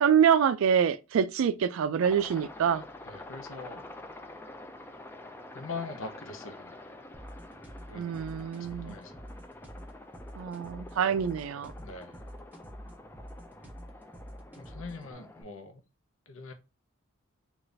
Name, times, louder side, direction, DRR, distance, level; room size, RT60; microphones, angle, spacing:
voice 1, 0.0-2.8 7.9-9.0 10.4-11.7, right 8 dB, 70° right, 0.3 m, -26 dB
Aircraft, 2.0-15.4, left 1 dB, 10° left, 0.3 m, -48 dB
voice 2, 3.1-3.9 5.5-6.9 7.9-9.2 11.8-12.2 14.6-15.8 16.3-16.5, left 3 dB, 70° left, 0.7 m, -43 dB
sound 1, 7.1-15.1, equal, 10° right, 0.7 m, -47 dB
3.9 x 2.4 x 3.2 m
head